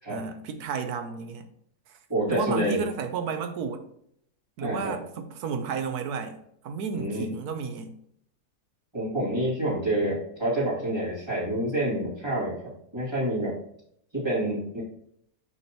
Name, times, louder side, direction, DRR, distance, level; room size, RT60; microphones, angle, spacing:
voice 1, 0.1-1.5 2.3-3.8 4.6-6.4 6.6-7.9, right 6 dB, 75° right, 8 dB, 1.3 m, -32 dB
voice 2, 2.1-2.8 4.6-5.0 6.9-7.3 8.9-13.5 14.1-14.8, right 1 dB, 15° right, -8 dB, 2.7 m, -28 dB
6.4 x 6.1 x 3.0 m, 0.70 s
omnidirectional pair, 1.6 m